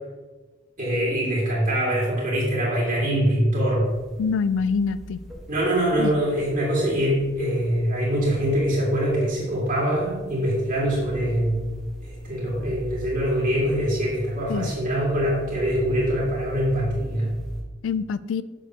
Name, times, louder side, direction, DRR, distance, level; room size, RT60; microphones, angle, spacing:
voice 1, 0.8-3.9 5.5-11.6 12.0-17.4, equal, 45° right, -5 dB, 2.2 m, -23 dB
sound 1, 3.8-17.6, right 1 dB, ahead, 1.3 m, -42 dB
voice 2, 4.2-5.2 6.0-6.1 14.5-14.7 17.8-18.4, left 5 dB, 75° left, 16 dB, 0.3 m, -25 dB
7.2 x 6.8 x 2.9 m, 1.3 s
head